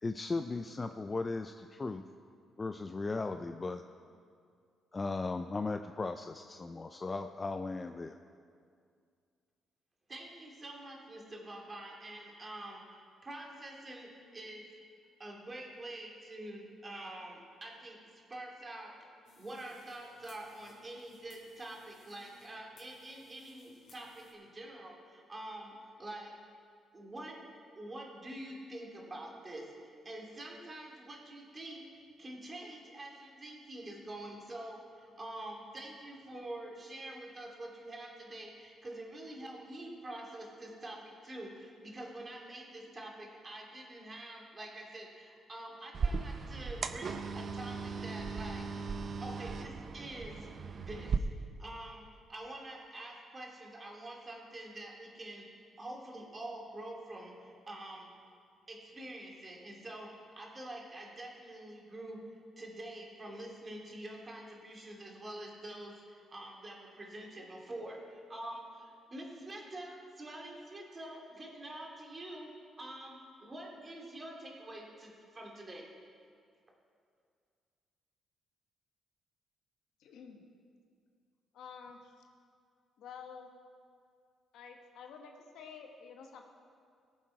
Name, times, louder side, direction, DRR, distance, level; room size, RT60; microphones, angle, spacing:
voice 1, 0.0-2.0 2.6-3.8 4.9-8.2, left 3 dB, 25° left, 8 dB, 0.4 m, -37 dB
voice 2, 10.1-14.7 15.2-18.9 19.4-26.3 26.9-27.4 27.8-31.8 32.2-48.6 49.2-50.5 50.7-51.3 51.6-52.0 52.3-55.4 55.8-58.1 58.7-72.5 72.8-75.9, right 1 dB, 30° right, -1 dB, 2.5 m, -46 dB
sound 1, 19.2-24.3, left 2 dB, 65° left, 3.6 m, -63 dB
sound 2, 45.9-51.2, right 5 dB, 45° right, 0.6 m, -37 dB
voice 3, 80.0-80.4 81.5-82.2 83.0-83.5 84.5-86.4, left 6 dB, 80° left, 3 dB, 1.3 m, -50 dB
17.5 x 7.3 x 4.8 m, 2.2 s
cardioid pair, 90°, 0 cm